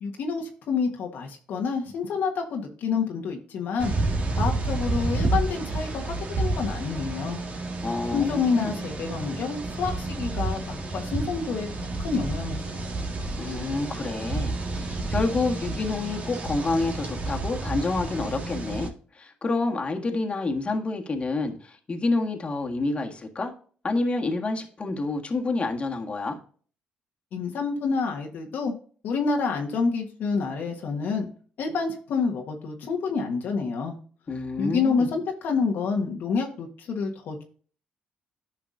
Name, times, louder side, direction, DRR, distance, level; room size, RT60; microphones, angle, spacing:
voice 1, 0.0-3.9 4.3-7.4 8.1-12.8 27.3-28.7 29.0-31.3 31.6-33.9 34.6-37.4, left 5 dB, 70° left, 2 dB, 1.4 m, -28 dB
sound 1, 3.8-18.9, right 2 dB, 45° right, 1.8 m, -30 dB
voice 2, 7.8-8.7 13.4-23.5 23.8-26.4 34.3-35.1, left 3 dB, 35° left, 3 dB, 1.7 m, -28 dB
10.5 x 5.8 x 2.6 m, 0.42 s
supercardioid pair, 75°, 3 cm